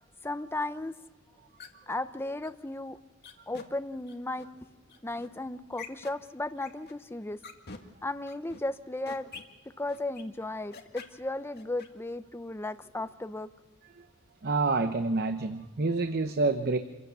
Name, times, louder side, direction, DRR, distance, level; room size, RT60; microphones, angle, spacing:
voice 1, 0.2-0.9 1.9-3.0 3.5-4.7 5.0-7.4 8.0-9.3 9.8-13.5, left 2 dB, 10° left, 10 dB, 0.6 m, -35 dB
sound 1, 1.6-1.9 2.4-2.5 3.2-3.6 4.1-4.4 4.9-5.3 5.7-6.1 6.6-6.9 7.4-7.8 8.3-8.6 9.1-9.4 9.9-10.2 10.7-11.1 11.5-11.9, left 5 dB, 50° left, 1.9 m, -45 dB
voice 2, 14.4-16.8, right 3 dB, 45° right, 8 dB, 0.8 m, -28 dB
27.0 x 16.5 x 6.9 m, 1.3 s
head